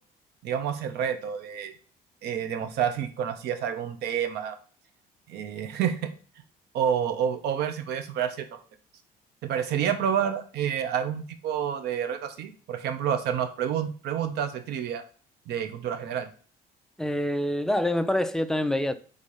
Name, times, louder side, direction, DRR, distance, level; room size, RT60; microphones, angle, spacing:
voice 1, 0.4-1.7 2.2-4.6 5.3-6.1 6.7-8.4 9.4-15.0 15.5-16.3, right 8 dB, 75° right, 1.0 m, -29 dB
voice 2, 17.0-19.0, left 1 dB, 5° left, 0.5 m, -26 dB
5.0 x 4.0 x 5.5 m
cardioid pair, 110°, 17 cm